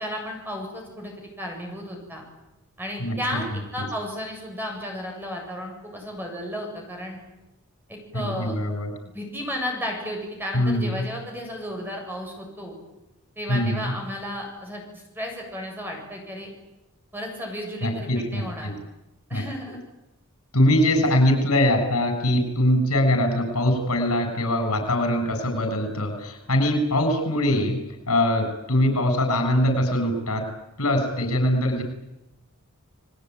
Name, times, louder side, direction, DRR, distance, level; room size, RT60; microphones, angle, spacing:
voice 1, 0.0-2.2 2.8-3.5 3.7-7.2 7.9-8.5 9.1-12.7 13.4-16.5 17.1-18.7 19.3-19.8, equal, 10° right, 1 dB, 7.9 m, -33 dB
voice 2, 3.0-3.4 8.1-8.9 10.5-11.0 13.5-13.9 17.8-18.7 19.3-19.4 20.5-27.8 28.1-30.4 30.8-31.8, left 1 dB, 85° left, 6 dB, 6.7 m, -22 dB
30.0 x 20.5 x 9.4 m, 0.96 s
head